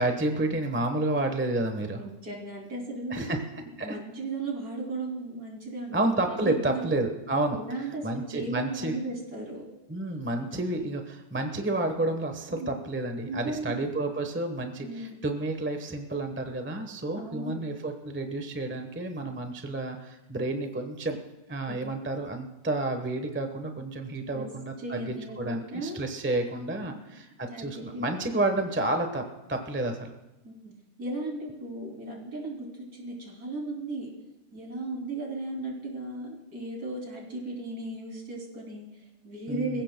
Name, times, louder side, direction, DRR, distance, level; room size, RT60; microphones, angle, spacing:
voice 1, 0.0-2.0 3.1-3.4 3.8-4.0 5.9-7.6 8.0-8.9 9.9-21.2 21.5-30.1 39.5-39.8, right 2 dB, 10° right, 5 dB, 0.7 m, -30 dB
voice 2, 1.9-3.3 3.6-7.0 7.5-9.6 12.5-12.8 13.2-13.8 14.8-15.2 17.1-17.7 21.7-22.0 24.3-24.5 24.8-26.0 26.8-27.2 27.5-28.2 30.4-30.7 31.0-34.1 34.5-39.8, right 2 dB, 55° right, -2 dB, 3.5 m, -36 dB
26.0 x 16.0 x 2.2 m, 0.97 s
omnidirectional pair, 1.9 m